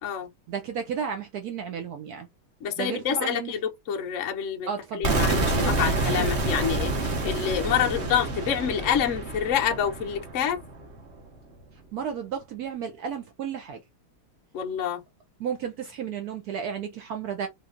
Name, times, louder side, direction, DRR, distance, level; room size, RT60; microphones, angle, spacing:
voice 1, 0.5-2.3 2.8-3.6 4.7-5.2 11.9-13.8 15.4-17.5, right 7 dB, 90° right, 0.8 m, -33 dB
voice 2, 2.6-10.6 14.5-15.0, left 9 dB, 90° left, 0.6 m, -27 dB
sound 1, 5.0-10.9, right 2 dB, 40° right, 1.0 m, -28 dB
3.6 x 3.2 x 2.5 m
omnidirectional pair, 2.4 m